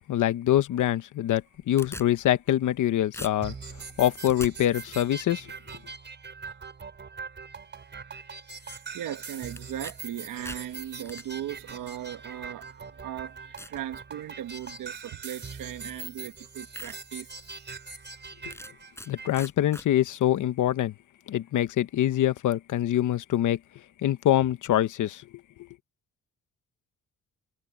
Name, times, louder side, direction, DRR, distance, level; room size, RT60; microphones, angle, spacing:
voice 1, 0.1-1.4 1.7-3.5 4.0-5.5 18.5-18.6 19.1-20.9 21.3-23.6 24.0-25.2, left 12 dB, 65° left, 1.1 m, -24 dB
sound 1, 1.4-2.8 3.1-4.5 9.6-10.0 10.3-11.2 12.1-12.2 12.8-12.9 13.6-13.8 14.3-14.7 15.8-15.9 16.3-16.4 16.8-17.0 17.4-17.5 18.5-19.1 19.3-19.9, left 1 dB, 10° left, 6.5 m, -42 dB
sound 2, 3.4-19.4, right 5 dB, 35° right, 3.9 m, -42 dB
voice 2, 8.6-17.5, right 11 dB, 80° right, 1.8 m, -38 dB
cardioid pair, 125°, 33 cm